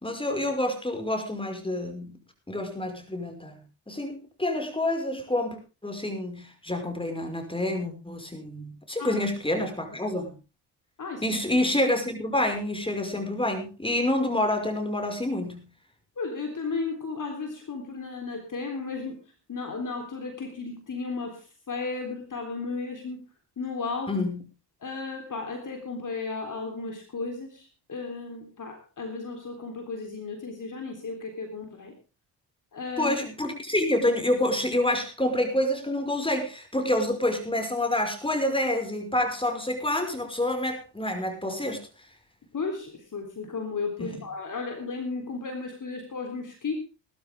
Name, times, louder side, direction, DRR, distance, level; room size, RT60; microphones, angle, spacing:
voice 1, 0.0-2.2 2.5-3.6 3.9-10.3 11.2-15.6 24.1-24.4 33.0-41.8 44.0-44.2, left 1 dB, 10° left, 5 dB, 5.5 m, -28 dB
voice 2, 11.0-11.4 16.2-19.2 19.5-23.2 23.6-24.2 24.8-32.0 32.7-33.2 42.5-46.8, left 4 dB, 40° left, 4 dB, 3.6 m, -34 dB
19.5 x 12.5 x 3.6 m, 0.31 s
hypercardioid pair, 50°, 48 cm